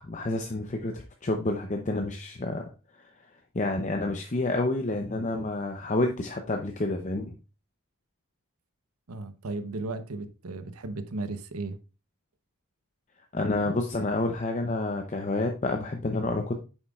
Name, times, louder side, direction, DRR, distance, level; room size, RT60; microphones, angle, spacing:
voice 1, 0.0-2.7 3.5-7.3 13.3-16.6, left 2 dB, 35° left, 0.7 m, -29 dB
voice 2, 9.1-11.8, right 2 dB, 90° right, 0.8 m, -35 dB
8.9 x 7.2 x 2.4 m
head